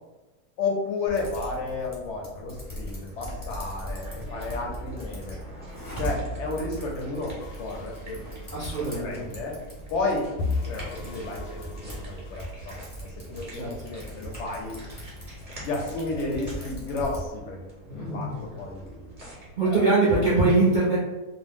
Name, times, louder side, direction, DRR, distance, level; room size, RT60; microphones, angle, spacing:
voice 1, 0.6-5.4 6.0-8.2 9.0-9.5 9.9-10.2 10.6-12.8 13.3-14.8 15.6-19.1 19.6-19.8, left 3 dB, 70° left, 0 dB, 0.7 m, -32 dB
Typing, 1.1-17.3, equal, 30° left, 0.4 m, -40 dB
sound 1, 2.5-19.8, equal, 30° right, 0.8 m, -42 dB
sound 2, 7.4-12.7, left 3 dB, 90° left, 1.1 m, -36 dB
voice 2, 8.5-9.2 13.5-13.7 19.6-21.0, right 3 dB, 60° right, -9 dB, 0.5 m, -22 dB
2.6 x 2.0 x 3.4 m, 1.1 s
omnidirectional pair, 1.6 m